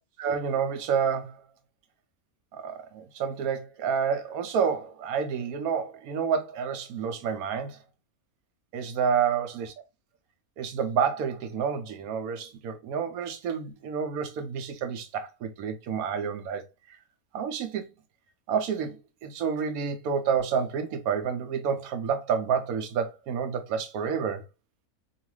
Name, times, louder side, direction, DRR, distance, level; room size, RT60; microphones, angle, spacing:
voice 1, 0.2-1.4 2.5-7.8 8.7-9.7 10.6-16.6 17.3-17.9 18.5-24.4, right 6 dB, 75° right, 1.1 m, -29 dB
3.0 x 2.3 x 3.0 m
omnidirectional pair, 1.6 m